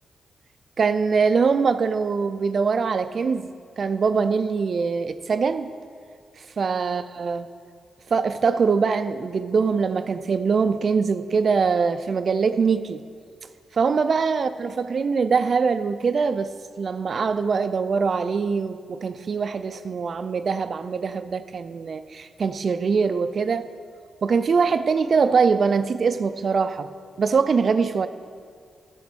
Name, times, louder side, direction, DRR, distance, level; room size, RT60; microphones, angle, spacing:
voice 1, 0.8-3.5 3.8-5.7 6.6-7.5 8.1-13.0 13.7-23.7 24.2-26.9 27.2-28.1, right 5 dB, 60° right, 12 dB, 0.4 m, -23 dB
9.3 x 7.8 x 6.2 m, 2.1 s
cardioid pair, 55°, 0 cm